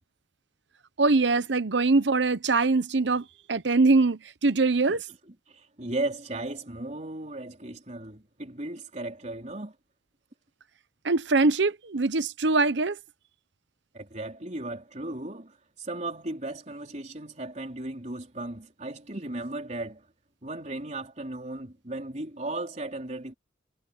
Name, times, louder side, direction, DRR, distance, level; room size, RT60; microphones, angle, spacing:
voice 1, 1.0-5.0 11.0-13.0, right 3 dB, 70° right, 0.9 m, -23 dB
voice 2, 5.5-9.7 13.9-20.0 20.4-23.3, right 2 dB, 40° right, 4.2 m, -36 dB
head